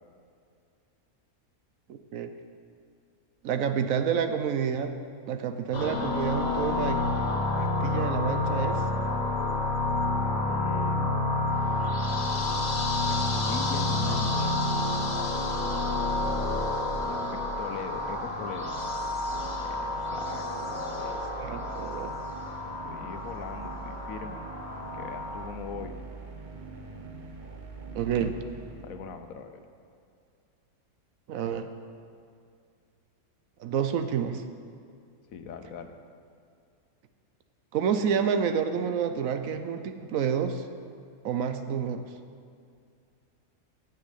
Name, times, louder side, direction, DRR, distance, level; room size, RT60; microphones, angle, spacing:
voice 1, 1.9-2.3 3.4-4.9 5.3-7.0 7.6-8.8 21.0-22.1 27.9-28.4 31.3-31.7 33.6-34.4 37.7-40.7 41.2-42.0, right 7 dB, 70° right, 8 dB, 1.0 m, -29 dB
sound 1, 5.7-25.5, left 2 dB, 30° left, 1.1 m, -29 dB
voice 2, 10.5-11.4 13.1-14.5 17.0-18.7 19.6-20.5 22.6-24.4 24.9-25.9 28.8-29.6 35.3-35.9, left 6 dB, 70° left, 7 dB, 1.2 m, -40 dB
sound 2, 17.6-29.4, right 4 dB, 40° right, 0.8 m, -43 dB
9.2 x 7.6 x 8.2 m, 2.3 s
omnidirectional pair, 1.5 m